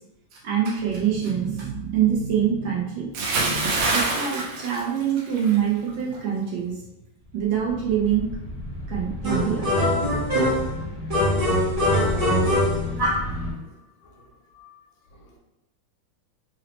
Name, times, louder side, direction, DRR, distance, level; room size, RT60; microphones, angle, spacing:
voice 1, 0.3-3.1 3.9-6.7 7.3-8.3 8.9-9.7, right 8 dB, 70° right, -3 dB, 1.2 m, -25 dB
Bathtub (filling or washing) / Splash splatter, 3.1-5.6 5.9-6.2, right 2 dB, 90° right, 1.6 m, -25 dB
sound 1, 7.2-13.5, left 2 dB, 40° left, 0.8 m, -33 dB
sound 2, 9.2-10.7 11.1-13.3, equal, 40° right, 0.7 m, -22 dB
voice 2, 14.0-14.8 15.1-15.3, left 3 dB, 75° left, 0 dB, 1.3 m, -54 dB
4.0 x 2.0 x 2.9 m, 0.89 s
omnidirectional pair, 2.4 m